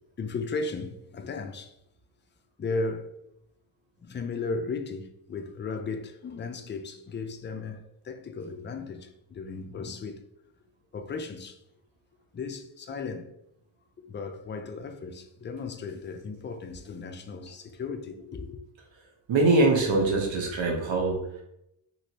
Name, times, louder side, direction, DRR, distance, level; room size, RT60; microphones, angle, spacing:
voice 1, 0.2-1.7 2.6-3.1 4.0-10.2 10.9-11.6 12.3-13.3 14.0-18.6, left 4 dB, 25° left, 0.3 m, -35 dB
voice 2, 19.3-21.4, right 2 dB, 65° right, 1.1 m, -23 dB
3.0 x 2.9 x 2.8 m
cardioid pair, 85°, 48 cm